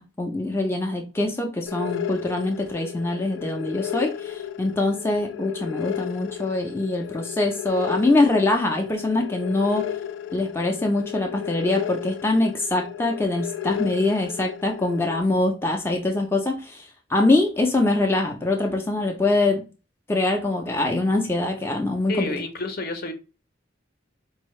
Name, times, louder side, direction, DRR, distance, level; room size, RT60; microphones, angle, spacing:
voice 1, 0.0-9.8 10.3-19.6 20.1-22.3, left 2 dB, 15° left, 0.5 m, -23 dB
sound 1, 1.7-15.2, left 10 dB, 75° left, 0.3 m, -33 dB
voice 2, 22.1-23.1, left 2 dB, 50° left, 0.7 m, -29 dB
4.6 x 2.6 x 3.1 m
head